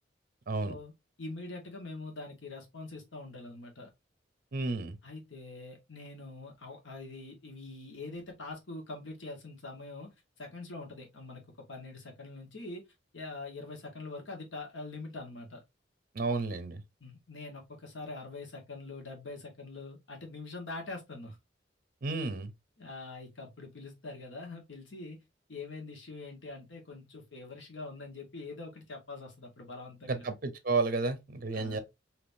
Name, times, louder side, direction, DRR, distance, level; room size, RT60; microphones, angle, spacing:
voice 1, 1.2-3.9 5.0-12.8 13.1-15.6 17.0-21.4 22.8-25.2 25.5-30.2 31.5-31.8, left 3 dB, 90° left, 1.2 m, -44 dB
voice 2, 4.5-5.0 16.1-16.8 22.0-22.5 30.1-31.8, right 3 dB, 50° right, 0.6 m, -32 dB
3.5 x 2.8 x 2.6 m
head